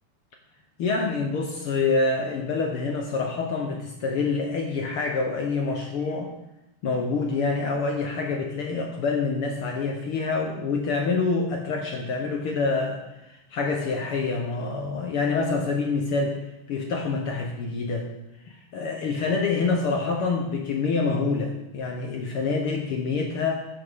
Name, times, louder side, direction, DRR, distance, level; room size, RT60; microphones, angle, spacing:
voice 1, 0.8-6.3 6.8-13.0 13.3-16.4 16.7-18.1 18.5-23.7, left 4 dB, 70° left, 2 dB, 1.3 m, -26 dB
13.0 x 9.7 x 3.7 m, 0.90 s
omnidirectional pair, 3.9 m